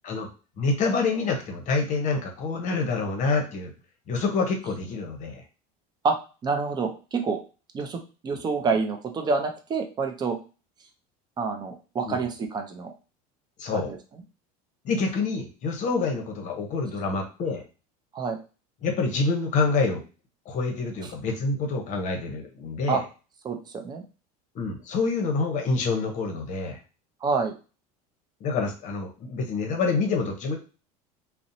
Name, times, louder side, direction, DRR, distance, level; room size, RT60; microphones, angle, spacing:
voice 1, 0.6-3.7 4.1-5.4 12.0-12.2 13.6-13.9 14.8-17.6 18.8-20.0 20.5-23.0 24.5-26.8 28.4-30.6, left 4 dB, 45° left, 3 dB, 0.8 m, -27 dB
voice 2, 6.4-7.4 7.7-10.4 11.4-12.9 13.7-14.0 18.1-18.4 22.9-23.0 23.4-24.0 27.2-27.5, right 4 dB, 25° right, 4 dB, 0.5 m, -27 dB
2.6 x 2.0 x 2.6 m, 0.33 s
supercardioid pair, 125°, 18 cm